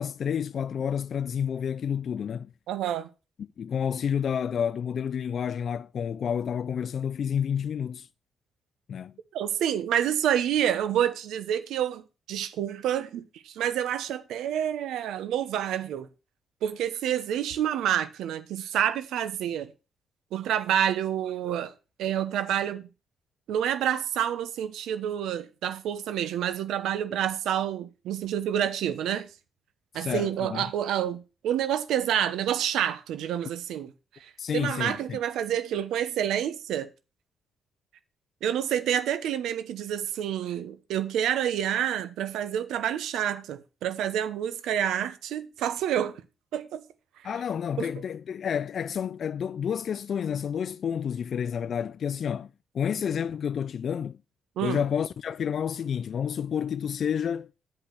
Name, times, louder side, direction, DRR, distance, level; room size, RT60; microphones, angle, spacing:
voice 1, 0.0-2.5 3.6-8.1 8.9-9.1 29.9-30.7 34.4-35.2 47.2-54.2 54.6-57.5, left 8 dB, 55° left, 0.4 m, -30 dB
voice 2, 2.7-3.1 9.3-12.0 12.3-16.1 16.6-19.7 20.3-21.7 22.0-22.9 23.5-29.3 29.9-33.9 34.2-36.9 38.4-46.2 46.5-46.8 47.8-47.9 54.6-54.8, right 10 dB, 80° right, 0.9 m, -28 dB
8.5 x 5.2 x 5.8 m
cardioid pair, 90°, 0 cm